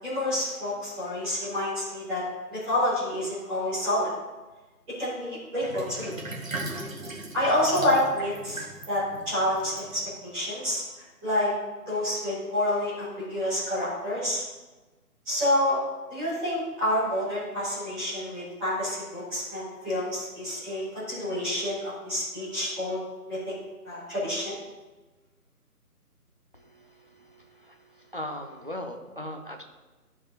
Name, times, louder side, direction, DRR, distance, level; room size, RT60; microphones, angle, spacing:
voice 1, 0.0-2.2 2.5-4.1 5.0-6.1 7.3-10.8 11.2-11.5 11.9-14.4 15.2-15.8 16.1-23.0 23.3-23.4 23.8-24.5, left 1 dB, 5° right, -15 dB, 1.8 m, -28 dB
Sink (filling or washing), 5.6-10.3, right 2 dB, 55° right, 1.4 m, -38 dB
voice 2, 26.5-29.6, left 1 dB, 35° right, 4 dB, 0.5 m, -39 dB
12.5 x 4.8 x 2.8 m, 1.2 s
figure-of-eight pair, 155°, 47 cm